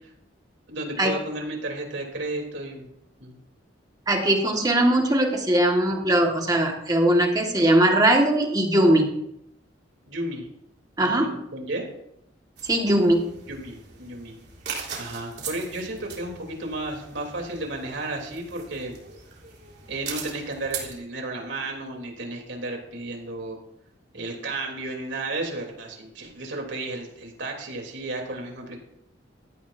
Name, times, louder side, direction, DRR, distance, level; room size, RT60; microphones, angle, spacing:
voice 1, 0.7-2.9 3.2-3.4 10.1-10.5 11.0-11.9 13.5-14.3 15.0-18.9 19.9-23.6 24.1-28.8, right 2 dB, 75° right, 1 dB, 3.4 m, -33 dB
voice 2, 4.1-9.1 11.0-11.4 12.6-13.3, right 1 dB, 20° right, 2 dB, 1.8 m, -20 dB
sound 1, 12.6-20.9, right 6 dB, 55° right, 3.6 m, -40 dB
16.5 x 14.5 x 2.7 m, 0.78 s
head